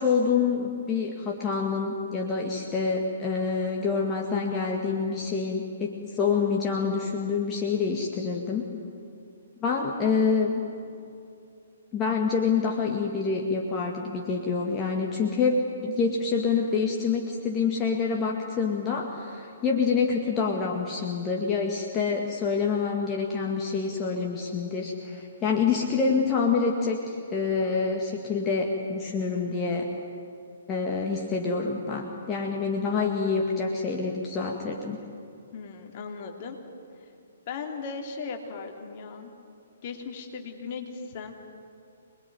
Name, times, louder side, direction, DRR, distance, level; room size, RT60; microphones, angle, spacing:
voice 1, 0.0-8.6 9.6-10.6 11.9-29.9 30.7-35.0, left 5 dB, 20° left, 0 dB, 2.1 m, -27 dB
voice 2, 35.5-36.6 37.5-39.3 39.8-41.3, left 5 dB, 40° left, 3 dB, 3.1 m, -37 dB
26.5 x 20.5 x 9.6 m, 2.5 s
figure-of-eight pair, 125°, 0 cm